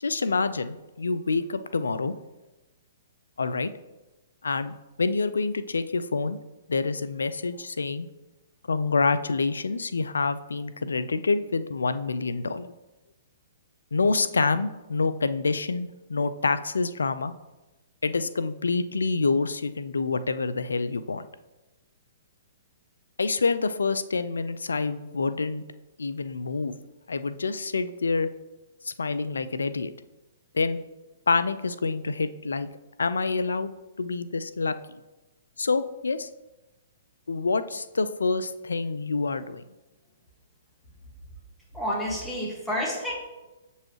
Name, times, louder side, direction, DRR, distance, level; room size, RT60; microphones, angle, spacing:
voice 1, 0.0-2.1 3.4-3.7 4.4-6.4 6.7-8.1 8.7-12.7 13.9-17.3 18.0-21.3 23.2-25.6 26.0-26.7 27.1-28.3 28.9-29.9 30.5-30.8 31.3-32.7 33.0-33.7 34.0-35.0 35.6-36.3 37.3-39.6, left 4 dB, 85° left, 12 dB, 0.4 m, -27 dB
voice 2, 41.7-43.1, equal, 5° left, -4 dB, 1.9 m, -29 dB
7.0 x 5.5 x 3.1 m, 1.1 s
hypercardioid pair, 125°, 0 cm